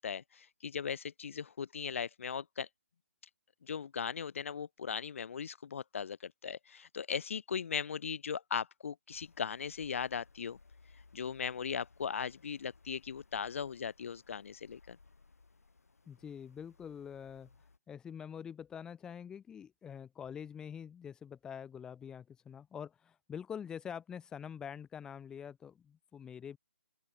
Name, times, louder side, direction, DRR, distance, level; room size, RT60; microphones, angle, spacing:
voice 1, 0.0-2.7 3.6-10.6 11.1-15.0, left 7 dB, 60° left, 0.7 m, -38 dB
sound 1, 9.1-17.8, left 4 dB, 85° left, 6.1 m, -63 dB
voice 2, 16.1-26.6, left 8 dB, 10° left, 1.1 m, -45 dB
open air
hypercardioid pair, 150°, 8 cm